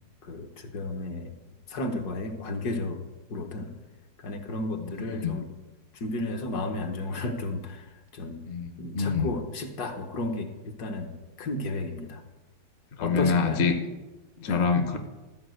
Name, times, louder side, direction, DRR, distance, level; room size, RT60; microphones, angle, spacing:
voice 1, 0.3-1.3 1.7-3.0 3.3-3.7 4.2-5.5 6.0-7.9 8.1-8.4 8.8-11.1 11.4-12.2 13.0-13.6 14.5-14.6, left 2 dB, 65° left, 4 dB, 1.6 m, -33 dB
voice 2, 4.8-5.3 8.5-9.3 13.0-13.7 14.4-15.0, left 5 dB, 45° left, 6 dB, 1.0 m, -26 dB
13.5 x 4.9 x 7.7 m, 1.1 s
omnidirectional pair, 1.9 m